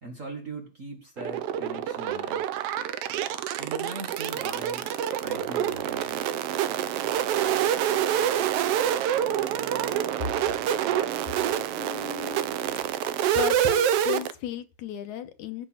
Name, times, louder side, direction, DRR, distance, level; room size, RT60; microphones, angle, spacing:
voice 1, 0.0-2.5 3.6-4.9 5.2-6.3, right 2 dB, 35° right, 3 dB, 1.5 m, -40 dB
sound 1, 1.2-14.3, right 10 dB, 70° right, 1.5 m, -27 dB
voice 2, 11.8-12.5 13.3-15.7, left 9 dB, 85° left, 9 dB, 2.5 m, -34 dB
15.0 x 5.9 x 5.7 m, 0.34 s
omnidirectional pair, 3.3 m